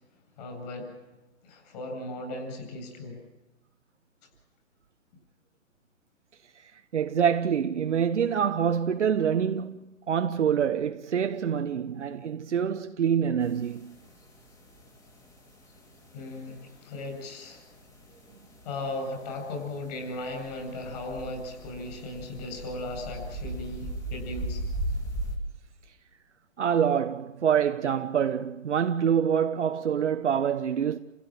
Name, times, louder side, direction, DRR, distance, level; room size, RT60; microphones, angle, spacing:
voice 1, 0.4-0.9 1.4-3.2 16.1-17.6 18.6-24.6, left 2 dB, 30° left, 7.9 m, -37 dB
voice 2, 6.9-13.9 26.6-31.0, right 8 dB, 60° right, 1.2 m, -26 dB
sound 1, 13.4-25.4, right 1 dB, 10° left, 2.7 m, -39 dB
30.0 x 16.5 x 9.2 m
hypercardioid pair, 160°, 40 cm